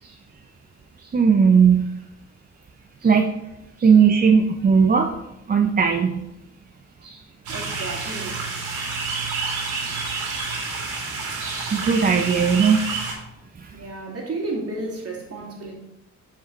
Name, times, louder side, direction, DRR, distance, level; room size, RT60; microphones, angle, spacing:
voice 1, 1.1-1.9 3.0-3.3 3.8-5.1 5.5-6.2 11.7-12.9 13.6-13.9, right 6 dB, 30° right, 4 dB, 0.6 m, -17 dB
voice 2, 7.0-8.4 11.4-11.8 13.7-15.8, right 2 dB, 50° right, -2 dB, 2.6 m, -34 dB
sound 1, 7.5-13.1, right 4 dB, 80° right, 2.5 m, -29 dB
8.0 x 5.2 x 4.1 m, 0.87 s
cardioid pair, 90°, 30 cm